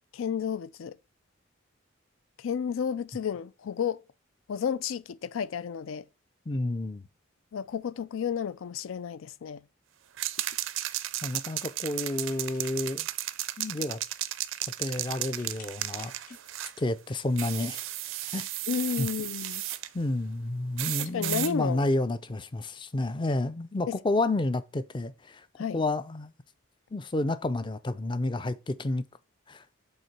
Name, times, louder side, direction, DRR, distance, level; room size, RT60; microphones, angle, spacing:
voice 1, 0.1-1.0 2.4-4.0 4.5-6.1 7.5-9.6 18.7-19.6 21.0-21.8 23.9-24.0 25.6-25.8, left 7 dB, 85° left, 0.4 m, -32 dB
voice 2, 6.5-7.0 11.2-13.1 13.6-14.0 14.8-16.1 16.8-17.8 18.3-18.5 19.0-19.1 19.9-25.5 25.7-26.3 26.9-29.0 29.5-29.6, left 2 dB, 25° left, 0.4 m, -30 dB
sound 1, 10.2-16.8 17.4-19.9 20.8-21.5, right 14 dB, 75° right, 0.4 m, -34 dB
sound 2, 10.4-13.7 14.1-16.9 17.8-20.5, left 4 dB, 45° left, 2.0 m, -58 dB
5.5 x 3.9 x 5.8 m
head